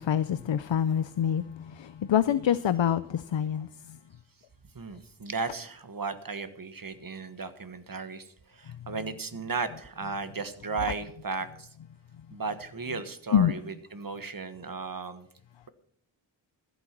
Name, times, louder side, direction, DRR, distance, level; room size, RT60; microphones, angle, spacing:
voice 1, 0.0-1.4 1.8-3.7 13.3-13.5, left 9 dB, 75° left, 15 dB, 0.6 m, -25 dB
voice 2, 4.7-11.7 12.3-15.3, right 4 dB, 45° right, 11 dB, 1.4 m, -35 dB
14.5 x 8.1 x 6.0 m, 0.70 s
wide cardioid pair, 70°, 45 cm